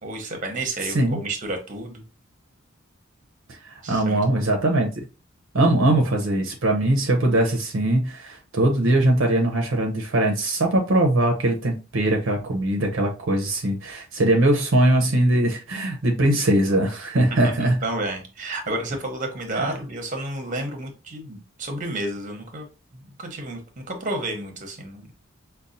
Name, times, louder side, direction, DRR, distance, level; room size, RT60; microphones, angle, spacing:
voice 1, 0.0-2.0 3.8-4.4 17.4-22.6 22.9-25.1, right 2 dB, 40° right, 0.8 m, -31 dB
voice 2, 3.5-4.9 5.5-17.8 19.5-19.7, right 1 dB, 65° right, 0.6 m, -21 dB
5.3 x 2.2 x 2.5 m
head